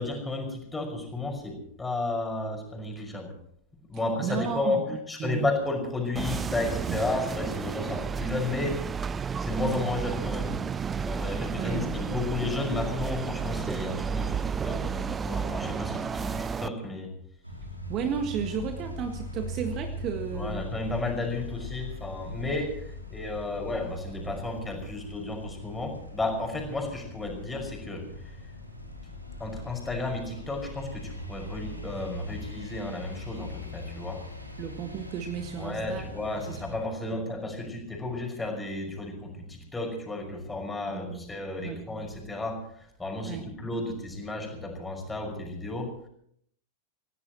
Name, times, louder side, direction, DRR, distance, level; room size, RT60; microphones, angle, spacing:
voice 1, 0.0-3.3 3.9-10.6 10.9-17.1 20.3-28.5 29.4-34.3 35.6-46.1, left 2 dB, 10° left, 2 dB, 5.8 m, -33 dB
voice 2, 4.2-5.5 6.9-7.0 11.5-11.9 17.9-20.5 34.6-36.1 40.9-41.2 41.6-41.8 43.2-43.4, right 7 dB, 35° right, 6 dB, 1.7 m, -33 dB
sound 1, 6.2-16.7, right 6 dB, 20° right, 0.5 m, -32 dB
sound 2, 17.4-36.8, left 1 dB, 90° right, 2.8 m, -41 dB
27.5 x 17.0 x 3.0 m, 0.67 s
figure-of-eight pair, 90°, 0 cm